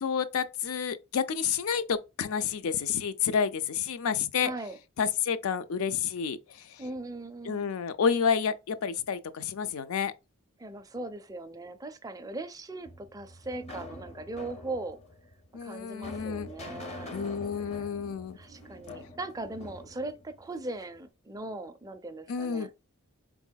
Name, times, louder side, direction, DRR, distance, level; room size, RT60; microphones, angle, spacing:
voice 1, 0.0-4.5 5.0-6.4 7.5-10.1 15.5-16.5 17.1-18.4 22.3-22.7, left 7 dB, 75° left, 0.4 m, -29 dB
voice 2, 4.4-4.8 6.8-7.7 10.6-15.0 15.6-17.1 17.7-17.9 18.4-22.7, right 2 dB, 15° right, 0.4 m, -39 dB
sound 1, 12.8-21.0, left 2 dB, 30° left, 0.7 m, -45 dB
3.9 x 3.6 x 2.2 m
head